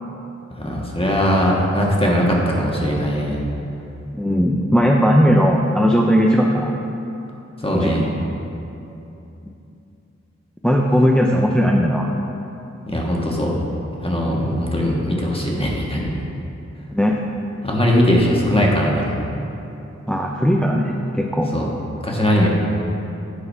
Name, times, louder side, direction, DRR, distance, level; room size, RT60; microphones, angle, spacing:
voice 1, 0.6-3.4 7.6-8.0 12.9-13.5 14.0-16.1 17.6-19.0 21.5-21.7 22.0-22.5, equal, 20° left, -3 dB, 1.4 m, -19 dB
voice 2, 4.2-6.7 7.7-8.1 10.6-12.1 16.9-17.2 20.1-21.5, equal, 5° left, 0 dB, 0.5 m, -17 dB
9.7 x 4.0 x 5.5 m, 2.8 s
wide cardioid pair, 50°, 29 cm